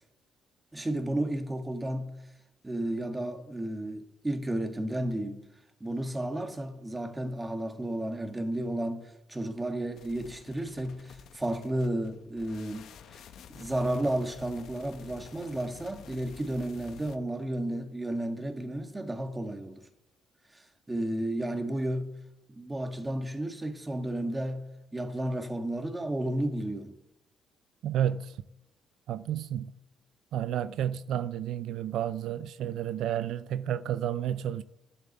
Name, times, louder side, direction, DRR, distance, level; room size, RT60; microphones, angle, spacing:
voice 1, 0.7-2.1 2.6-5.4 5.8-13.2 13.5-19.8 20.5-22.1 22.5-24.6 24.9-27.0, right 1 dB, 15° right, 1.8 m, -32 dB
sound 1, 9.9-17.2, left 7 dB, 75° left, 1.0 m, -51 dB
voice 2, 27.8-28.4 29.1-29.7 30.3-34.6, right 10 dB, 80° right, 0.4 m, -31 dB
12.0 x 7.6 x 7.9 m
cardioid pair, 90°, 0 cm